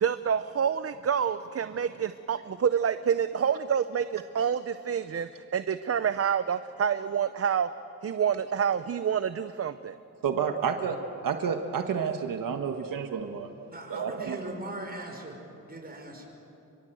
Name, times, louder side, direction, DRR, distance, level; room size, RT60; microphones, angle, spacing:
voice 1, 0.0-7.7 8.0-10.0, right 7 dB, 45° right, 12 dB, 0.7 m, -28 dB
voice 2, 10.2-13.5 13.9-14.4, right 6 dB, 85° right, 5 dB, 1.5 m, -30 dB
voice 3, 13.7-15.3 15.6-16.3, right 1 dB, 30° right, 2 dB, 5.6 m, -39 dB
28.0 x 22.5 x 7.9 m, 2.8 s
wide cardioid pair, 105°, 32 cm